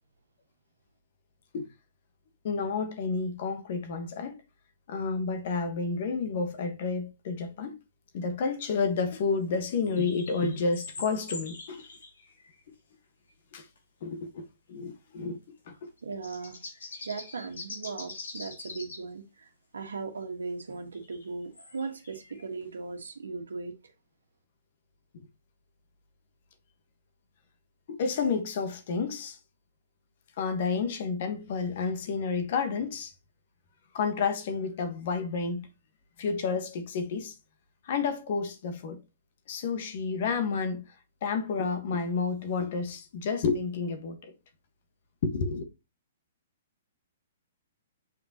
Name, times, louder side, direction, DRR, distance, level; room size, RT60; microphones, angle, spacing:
voice 1, 2.4-4.4 4.9-7.8 8.1-11.8 13.5-13.7 14.0-15.4 15.7-15.9 27.9-29.4 30.4-33.1 33.9-35.7 36.2-37.4 37.8-39.0 39.5-40.8 41.2-44.3 45.2-45.6, left 4 dB, 55° left, 1.4 m, -30 dB
sound 1, 9.5-12.6 13.8-13.9 15.9-19.0 20.7-22.7, left 3 dB, 80° left, 2.6 m, -44 dB
voice 2, 16.0-16.6 17.0-23.9, right 4 dB, 80° right, 1.4 m, -38 dB
6.7 x 5.5 x 2.9 m
hypercardioid pair, 125°, 0 cm